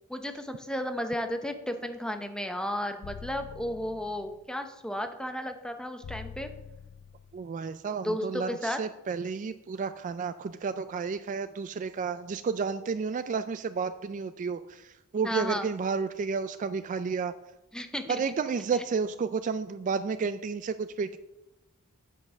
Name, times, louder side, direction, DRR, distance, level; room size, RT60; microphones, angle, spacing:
voice 1, 0.1-6.5 8.0-8.8 15.2-15.7 17.7-18.2, left 1 dB, 5° left, 7 dB, 0.7 m, -33 dB
sound 1, 3.0-4.5 6.0-7.5, left 6 dB, 60° left, 0.3 m, -45 dB
voice 2, 7.3-17.3 18.1-21.2, right 5 dB, 35° right, 11 dB, 0.3 m, -31 dB
8.6 x 5.3 x 6.2 m, 0.92 s
head